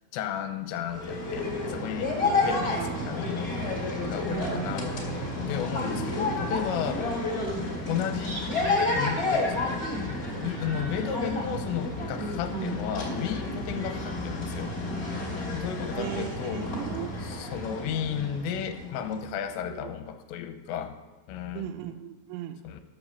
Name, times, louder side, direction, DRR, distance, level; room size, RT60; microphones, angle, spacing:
voice 1, 0.1-2.1 2.4-3.5 4.1-4.9 5.4-7.1 7.9-8.4 9.0-14.7 15.5-16.7 17.2-21.0 21.3-21.7 22.6-22.8, left 8 dB, 85° left, 8 dB, 2.8 m, -34 dB
sound 1, 0.8-19.3, left 2 dB, 35° left, 1.8 m, -31 dB
voice 2, 2.2-3.1 4.3-4.8 12.5-12.8 16.0-17.1 19.6-19.9 21.5-22.6, right 12 dB, 90° right, 8 dB, 3.0 m, -37 dB
sound 2, 8.2-11.6, right 1 dB, 35° right, 1.4 m, -40 dB
11.5 x 5.9 x 6.9 m, 1.3 s
omnidirectional pair, 5.4 m